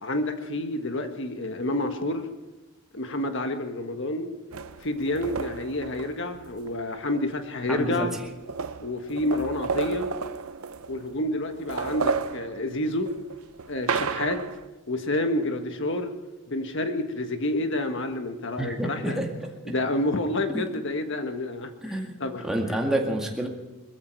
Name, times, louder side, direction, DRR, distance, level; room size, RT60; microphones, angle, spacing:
voice 1, 0.0-2.3 2.9-4.3 4.8-8.1 8.8-10.1 10.9-13.1 13.7-14.4 14.9-16.1 16.5-19.2 19.7-21.7 22.2-22.5, left 1 dB, 60° left, 6 dB, 1.6 m, -29 dB
sound 1, 4.5-6.7 7.7-7.8 8.0-11.2 11.5-14.7, right 5 dB, 80° right, 0.6 m, -32 dB
voice 2, 7.7-8.1 18.6-19.3 20.5-20.6 21.8-22.1 22.4-23.5, right 1 dB, ahead, 0 dB, 2.1 m, -28 dB
21.5 x 14.5 x 4.7 m, 1.1 s
head